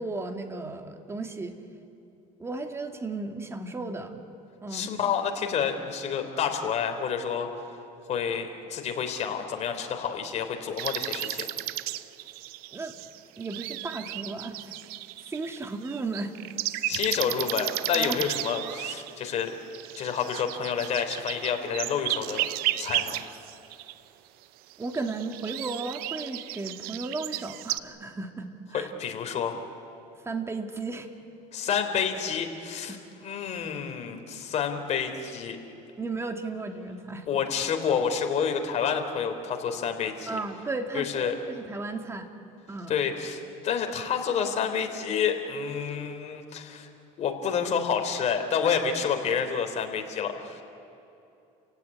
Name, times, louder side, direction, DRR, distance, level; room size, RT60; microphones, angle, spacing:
voice 1, 0.0-1.6 2.4-4.2 4.6-4.9 12.7-13.0 13.4-14.8 15.3-16.3 17.9-18.2 24.8-28.9 30.2-31.1 32.9-33.0 36.0-37.3 40.3-42.3 42.7-42.9, right 3 dB, 15° right, 5 dB, 2.2 m, -34 dB
voice 2, 4.7-7.5 8.1-11.5 16.9-19.5 20.0-22.5 22.7-23.2 28.7-29.6 31.5-33.0 33.2-35.6 37.3-40.4 40.9-41.3 42.9-46.9 47.2-50.6, left 7 dB, 45° left, 5 dB, 3.3 m, -29 dB
sound 1, 10.8-23.9 24.7-27.8, right 16 dB, 75° right, 0.8 m, -34 dB
29.5 x 16.5 x 9.7 m, 2.8 s
cardioid pair, 120°, 16 cm